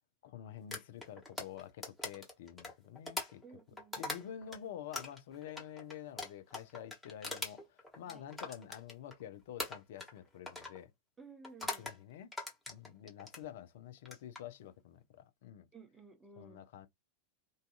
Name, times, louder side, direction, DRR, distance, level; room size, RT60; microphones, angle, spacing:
voice 1, 0.2-3.4 4.0-10.9 11.8-12.3 12.7-15.7 16.4-16.9, left 10 dB, 55° left, 0.5 m, -48 dB
sound 1, 0.7-4.6 4.9-9.2 9.6-10.2 10.5-10.8 11.4-12.0 12.3-13.4 14.0-14.4, left 2 dB, 10° left, 1.0 m, -42 dB
voice 2, 3.4-4.2 8.1-8.2 11.2-11.9 15.7-16.6, right 4 dB, 10° right, 0.8 m, -55 dB
2.6 x 2.3 x 2.3 m
figure-of-eight pair, 90°, 0 cm